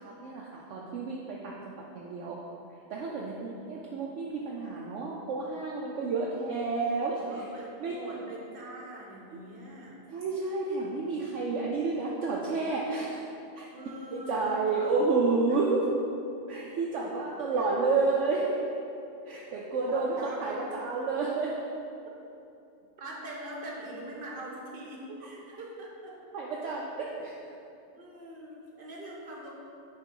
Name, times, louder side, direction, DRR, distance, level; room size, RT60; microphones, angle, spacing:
voice 1, 0.0-2.4 2.9-7.2 7.8-8.0 10.1-13.2 13.6-13.7 14.1-15.9 16.5-18.6 19.3-21.5 26.3-27.4, right 3 dB, 70° right, -3 dB, 0.9 m, -30 dB
voice 2, 3.2-3.6 7.2-10.0 13.7-14.9 15.5-15.6 17.6-17.7 19.9-20.6 23.0-26.2 27.1-27.2 27.9-29.5, right 1 dB, 45° right, -3 dB, 1.2 m, -43 dB
5.6 x 3.7 x 5.3 m, 2.7 s
omnidirectional pair, 1.4 m